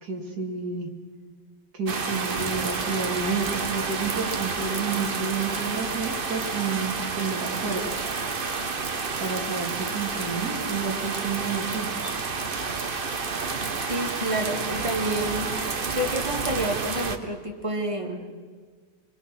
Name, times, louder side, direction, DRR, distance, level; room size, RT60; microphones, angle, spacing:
voice 1, 0.0-0.9 1.7-8.1 9.2-12.1, right 5 dB, 60° right, 1 dB, 3.1 m, -30 dB
sound 1, 1.9-17.2, right 4 dB, 35° right, 1.0 m, -30 dB
voice 2, 13.9-15.6 15.9-18.3, right 1 dB, 15° right, 1 dB, 2.3 m, -29 dB
26.5 x 22.5 x 6.2 m, 1.5 s
omnidirectional pair, 1.9 m